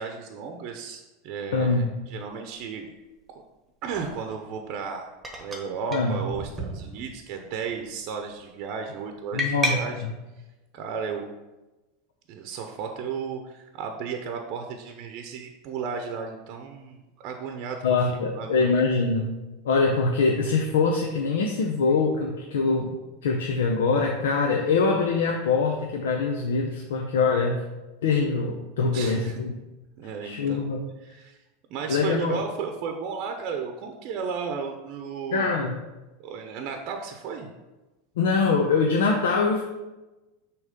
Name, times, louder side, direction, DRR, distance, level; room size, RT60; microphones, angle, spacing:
voice 1, 0.0-2.9 3.8-5.1 5.4-10.0 10.7-11.3 12.3-18.7 28.9-29.4 30.0-30.6 31.0-31.4 31.7-35.5 36.2-37.5, right 6 dB, 50° right, 4 dB, 0.7 m, -34 dB
voice 2, 1.5-1.9 5.9-6.2 9.3-10.1 17.8-19.3 19.6-27.6 28.0-29.5 30.2-30.8 31.9-32.4 35.3-35.8 38.2-39.6, left 4 dB, 85° left, 1 dB, 0.7 m, -24 dB
sound 1, 2.2-2.3 3.9-4.2 5.2-5.7 5.9-6.0 6.3-7.2 7.6-7.9 9.4-9.7, equal, 15° right, 1.2 m, -31 dB
6.3 x 3.1 x 5.2 m, 1.1 s
supercardioid pair, 125°, 0 cm